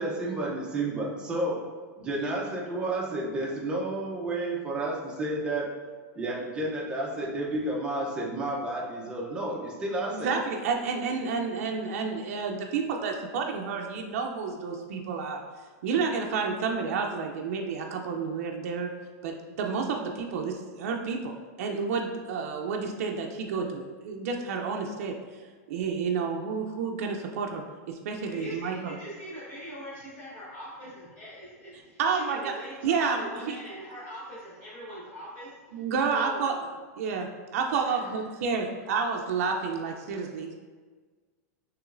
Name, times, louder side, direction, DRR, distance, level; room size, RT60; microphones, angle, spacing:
voice 1, 0.0-1.6 2.0-5.7 6.1-10.3, right 2 dB, 10° right, -3 dB, 0.6 m, -31 dB
voice 2, 10.1-15.4 15.8-18.9 19.2-25.2 25.7-29.0 32.0-32.5 32.8-33.5 35.7-36.5 37.0-37.3 37.5-40.5, right 5 dB, 65° right, 1 dB, 0.5 m, -30 dB
voice 3, 28.3-36.6 37.8-38.7, equal, 40° left, -11 dB, 1.3 m, -42 dB
6.0 x 3.0 x 2.5 m, 1.4 s
supercardioid pair, 170°, 9 cm